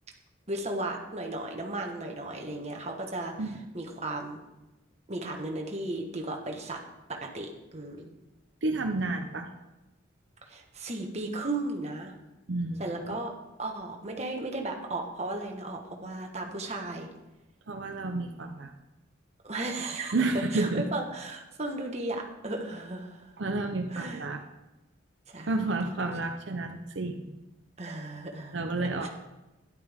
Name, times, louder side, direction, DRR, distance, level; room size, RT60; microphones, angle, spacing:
voice 1, 0.5-4.4 5.1-6.8 7.1-8.2 10.5-12.1 12.8-13.3 13.6-17.1 19.4-20.2 20.5-23.3 23.9-24.2 25.3-25.7 27.8-28.6 29.0-29.1, right 2 dB, 35° right, 1 dB, 1.4 m, -35 dB
voice 2, 8.6-9.5 12.5-12.8 13.1-13.2 17.7-18.7 20.1-20.9 23.4-24.4 25.5-27.4 28.5-29.1, right 2 dB, 70° right, 4 dB, 0.7 m, -30 dB
12.5 x 11.0 x 3.6 m, 1.0 s
head